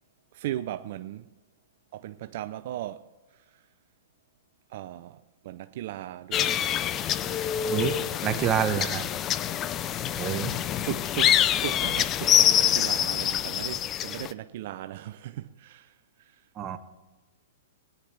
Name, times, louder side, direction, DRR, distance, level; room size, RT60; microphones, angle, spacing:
voice 1, 0.3-1.3 1.9-3.6 4.7-6.8 10.5-16.5, right 13 dB, 55° right, 0.5 m, -38 dB
sound 1, 6.3-14.3, left 10 dB, 25° left, 0.4 m, -25 dB
voice 2, 7.7-9.1 10.2-10.5 16.6-16.8, right 9 dB, 25° right, 1.0 m, -27 dB
22.0 x 10.0 x 3.3 m
hypercardioid pair, 145°, 0 cm